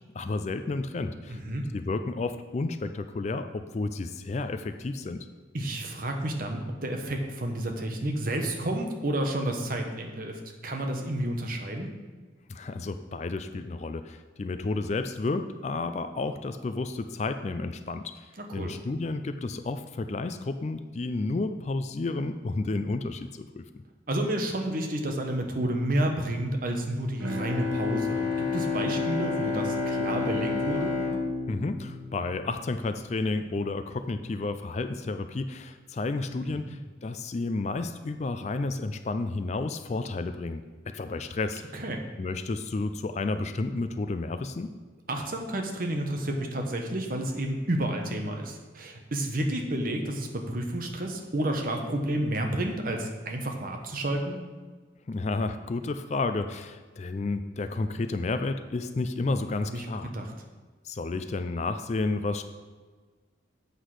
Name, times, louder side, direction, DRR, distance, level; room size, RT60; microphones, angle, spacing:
voice 1, 0.1-1.4 1.7-5.3 12.5-23.6 31.5-41.6 42.2-44.7 55.1-60.1 60.8-62.4, left 3 dB, 35° left, 10 dB, 0.3 m, -31 dB
voice 2, 1.3-1.7 5.5-11.9 18.4-18.7 24.1-31.0 36.5-36.8 41.7-42.0 45.1-54.4 59.3-59.4 59.7-59.9 60.1-60.3, right 1 dB, 45° right, 3 dB, 1.0 m, -30 dB
Bowed string instrument, 27.2-32.7, left 4 dB, 85° right, 1.0 m, -30 dB
8.1 x 6.0 x 4.8 m, 1.4 s
head